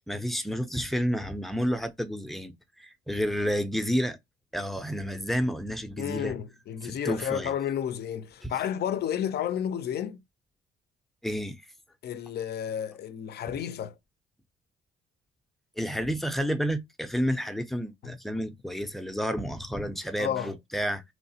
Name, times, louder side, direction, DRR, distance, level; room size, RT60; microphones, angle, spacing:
voice 1, 0.1-2.5 2.8-4.2 4.5-6.3 6.8-7.5 8.4-8.5 11.2-11.6 15.8-21.0, equal, ahead, 0.5 m, -30 dB
voice 2, 6.0-10.2 12.0-13.9 18.0-18.2 20.2-20.5, left 9 dB, 55° left, 0.4 m, -31 dB
3.1 x 2.0 x 2.7 m
cardioid pair, 90°, 20 cm